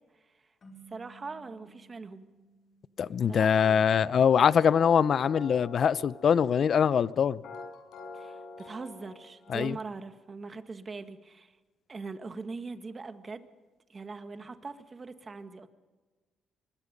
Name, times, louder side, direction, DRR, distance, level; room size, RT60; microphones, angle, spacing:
sound 1, 0.6-3.8, right 3 dB, 40° left, 5.7 m, -57 dB
voice 1, 0.9-2.3 3.3-3.8 8.1-11.6 11.9-13.5 13.9-15.7, right 4 dB, 35° right, 8 dB, 1.7 m, -41 dB
voice 2, 3.0-7.4 9.5-9.8, left 7 dB, 55° left, 18 dB, 0.6 m, -23 dB
sound 2, 4.3-9.6, left 3 dB, 75° left, 5.6 m, -46 dB
24.5 x 21.5 x 5.3 m, 1.3 s
cardioid pair, 90°, 0 cm